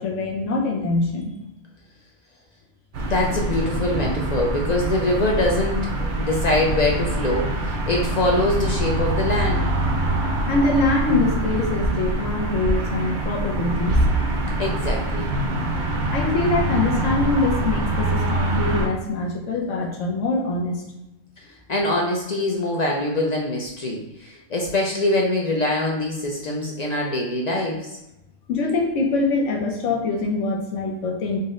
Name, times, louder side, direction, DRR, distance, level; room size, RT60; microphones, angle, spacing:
voice 1, 0.0-1.3 10.5-14.1 16.1-20.8 28.5-31.4, left 3 dB, 85° left, 0 dB, 1.1 m, -24 dB
sound 1, 2.9-18.9, right 1 dB, 50° right, 0.6 m, -24 dB
voice 2, 3.0-9.7 14.6-15.3 21.7-27.9, left 1 dB, 60° left, -1 dB, 0.4 m, -24 dB
4.0 x 2.1 x 3.6 m, 0.92 s
omnidirectional pair, 1.3 m